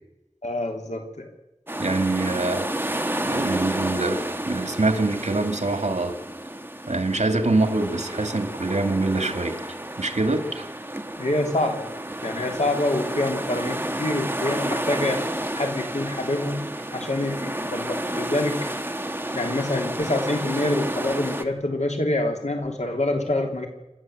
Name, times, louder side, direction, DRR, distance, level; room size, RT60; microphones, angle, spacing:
voice 1, 0.4-1.3 11.2-11.9 12.2-15.2 15.5-16.6 16.9-18.7 19.3-23.7, left 2 dB, 80° left, 3 dB, 3.1 m, -26 dB
sound 1, 1.7-21.4, right 1 dB, 20° right, 1.4 m, -31 dB
voice 2, 1.8-2.7 3.3-6.1 6.9-9.6 10.0-10.7, right 2 dB, 80° right, 7 dB, 2.4 m, -24 dB
27.5 x 12.5 x 7.8 m, 0.96 s
wide cardioid pair, 45°, 12 cm